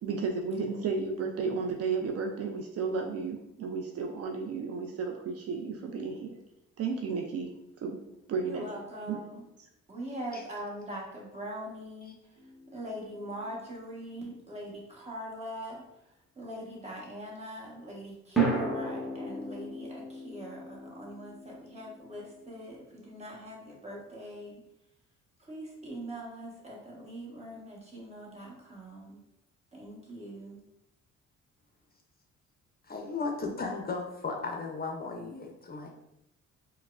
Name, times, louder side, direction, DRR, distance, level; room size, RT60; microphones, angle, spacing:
voice 1, 0.0-6.4 6.8-8.0 8.3-8.7 9.1-9.2, right 4 dB, 55° right, 3 dB, 0.5 m, -33 dB
voice 2, 8.4-9.5 9.9-12.2 12.7-15.8 16.4-24.6 25.4-29.2 29.7-30.6, equal, 20° right, -3 dB, 1.1 m, -42 dB
sound 1, 12.4-13.5 18.4-22.7, right 3 dB, ahead, 0.8 m, -34 dB
voice 3, 32.9-35.9, left 4 dB, 30° left, 2 dB, 0.5 m, -35 dB
4.5 x 2.1 x 2.4 m, 0.84 s
cardioid pair, 90°, 30 cm